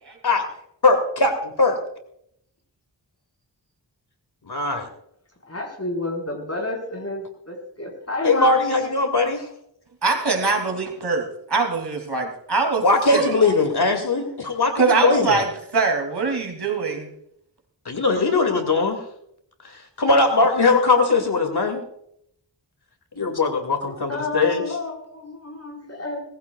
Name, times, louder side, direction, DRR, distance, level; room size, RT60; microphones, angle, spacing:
voice 1, 0.8-1.8 4.5-4.9 8.2-9.5 12.8-15.4 17.9-19.0 20.0-21.8 23.2-24.6, left 3 dB, 65° left, 5 dB, 2.3 m, -20 dB
voice 2, 5.5-8.9 24.1-26.2, left 2 dB, 35° left, 1 dB, 4.6 m, -30 dB
voice 3, 10.0-13.5 14.7-17.1, right 4 dB, 65° right, 2 dB, 2.7 m, -23 dB
19.0 x 15.0 x 2.3 m, 0.73 s
wide cardioid pair, 70°, 43 cm